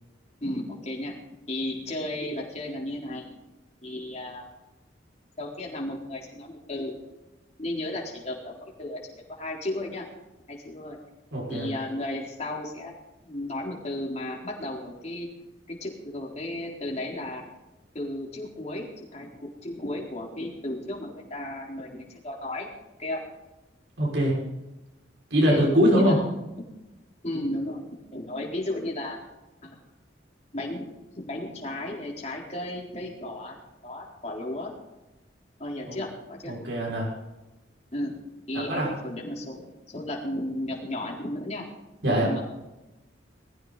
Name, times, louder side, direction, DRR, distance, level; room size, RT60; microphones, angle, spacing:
voice 1, 0.4-1.1 1.5-3.3 3.8-4.4 5.4-6.9 7.6-10.1 10.5-11.0 11.5-12.9 13.2-15.3 15.7-17.4 17.9-19.3 19.6-22.7 23.0-23.2 25.4-25.6 26.0-26.2 27.2-27.8 28.1-29.2 29.6-29.8 30.5-30.8 31.1-33.6 33.8-34.7 35.6-36.6 37.9-38.2 38.5-41.7 42.1-42.4, left 1 dB, 35° left, -1 dB, 4.0 m, -34 dB
voice 2, 11.3-11.7 24.0-24.3 25.3-26.2 35.9-36.0 36.4-37.1 38.5-38.9 42.0-42.3, equal, 70° right, -4 dB, 6.0 m, -22 dB
20.5 x 15.0 x 4.2 m, 1.0 s
head